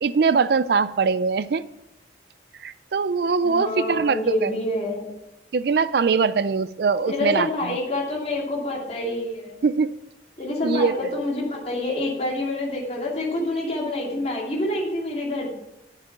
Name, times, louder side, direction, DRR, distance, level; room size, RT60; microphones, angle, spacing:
voice 1, 0.0-1.6 2.6-4.6 5.5-7.8 9.6-9.9 10.6-11.2, right 5 dB, 60° right, 15 dB, 0.4 m, -22 dB
voice 2, 3.4-5.1 7.1-9.6 10.4-15.5, left 1 dB, 35° left, -2 dB, 2.7 m, -27 dB
10.5 x 6.8 x 5.9 m, 0.90 s
head